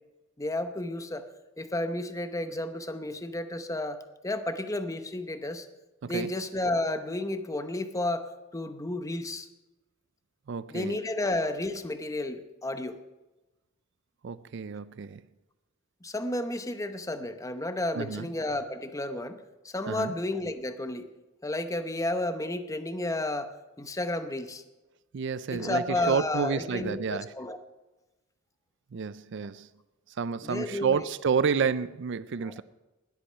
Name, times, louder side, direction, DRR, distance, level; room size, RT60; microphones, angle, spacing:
voice 1, 0.4-1.2 1.6-4.0 4.2-5.7 6.0-9.5 10.7-13.0 16.0-19.4 19.6-21.1 21.4-24.6 25.5-27.6 30.4-31.0 32.4-32.5, left 1 dB, 15° left, 0.8 m, -32 dB
voice 2, 10.5-11.0 14.2-15.2 17.9-18.3 19.9-20.2 25.1-27.3 28.9-29.7 30.1-32.6, right 6 dB, 60° right, 0.4 m, -30 dB
20.0 x 8.4 x 5.7 m
head